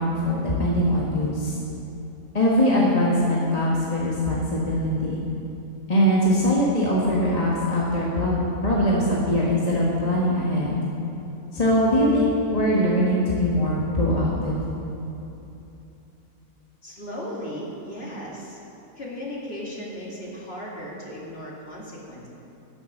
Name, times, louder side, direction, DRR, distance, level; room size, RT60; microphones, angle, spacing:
voice 1, 0.0-1.6 2.3-5.2 5.9-10.8 11.5-14.6, equal, 25° left, -5 dB, 1.5 m, -22 dB
voice 2, 16.8-18.6 19.0-22.3, equal, 40° left, -4 dB, 2.6 m, -36 dB
16.5 x 7.1 x 6.6 m, 2.9 s
omnidirectional pair, 1.6 m